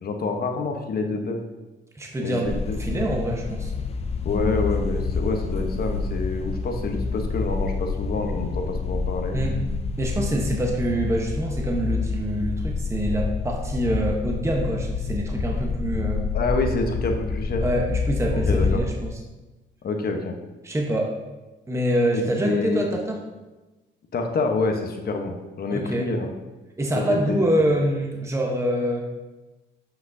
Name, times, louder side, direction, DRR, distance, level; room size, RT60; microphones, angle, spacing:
voice 1, 0.0-1.4 2.2-2.5 2.9-3.1 4.2-9.4 16.3-17.6 18.3-18.8 19.8-20.3 22.1-22.9 24.1-26.3 26.9-27.6, left 3 dB, 50° left, 3 dB, 1.0 m, -27 dB
voice 2, 1.9-3.7 9.3-9.6 10.0-16.3 17.6-19.1 20.6-21.2 21.7-23.2 25.7-26.1 26.8-29.1, right 1 dB, 15° right, 0 dB, 1.0 m, -25 dB
sound 1, 2.4-18.8, left 4 dB, 30° left, 0.5 m, -28 dB
8.1 x 5.8 x 2.7 m, 1.1 s
cardioid pair, 90°, 20 cm